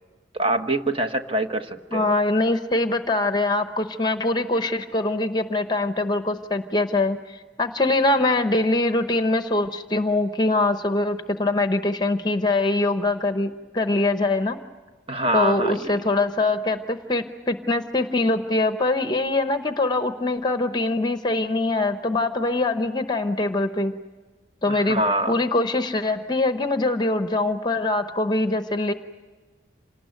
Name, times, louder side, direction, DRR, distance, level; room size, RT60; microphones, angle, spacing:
voice 1, 0.3-2.1 15.1-16.1 24.7-25.4, right 1 dB, 30° right, 7 dB, 1.2 m, -25 dB
voice 2, 1.9-14.6 15.3-23.9 24.6-25.0 25.3-28.9, left 2 dB, 20° left, 8 dB, 0.9 m, -23 dB
27.5 x 19.0 x 9.1 m, 1.4 s
head